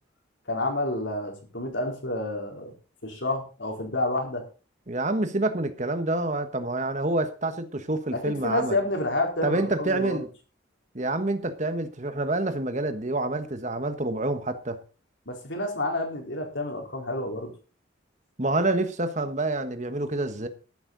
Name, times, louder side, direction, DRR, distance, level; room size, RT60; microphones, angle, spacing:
voice 1, 0.5-2.7 3.0-4.4 8.1-10.3 15.3-17.5, left 2 dB, 70° left, 4.3 m, -29 dB
voice 2, 4.9-8.8 9.4-10.3 10.9-14.8 18.4-20.5, right 2 dB, 40° right, 1.4 m, -27 dB
13.5 x 11.5 x 4.0 m
head